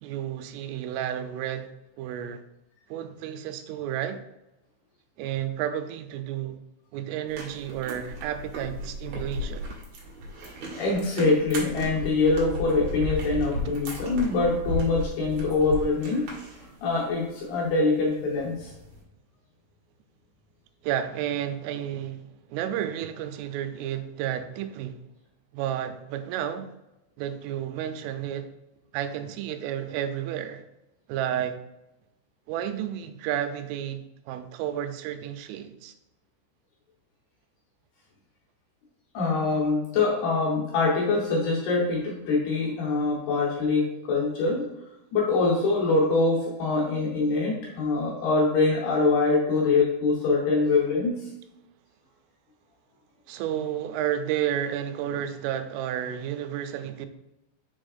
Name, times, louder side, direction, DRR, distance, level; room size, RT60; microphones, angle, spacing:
voice 1, 0.0-2.4 2.9-4.2 5.2-6.6 6.9-9.7 20.8-25.0 25.5-26.7 27.2-28.5 28.9-30.6 31.1-31.6 32.5-35.9 53.3-57.1, right 10 dB, 90° right, 3.1 m, -31 dB
sound 1, 7.3-19.0, left 1 dB, 60° right, 3.1 m, -35 dB
voice 2, 10.8-16.4 16.8-18.7 39.1-44.7 45.1-51.2, left 3 dB, 75° left, 2.5 m, -24 dB
6.9 x 6.3 x 2.4 m
omnidirectional pair, 5.6 m